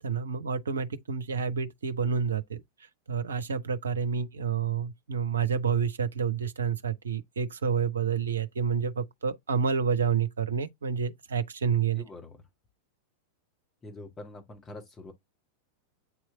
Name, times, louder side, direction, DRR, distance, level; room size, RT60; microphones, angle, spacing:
voice 1, 0.0-2.6 3.1-12.0, right 6 dB, 70° right, 0.7 m, -29 dB
voice 2, 11.9-12.4 13.8-15.1, left 2 dB, 20° left, 1.7 m, -44 dB
8.3 x 3.2 x 3.8 m
figure-of-eight pair, 90°, 0 cm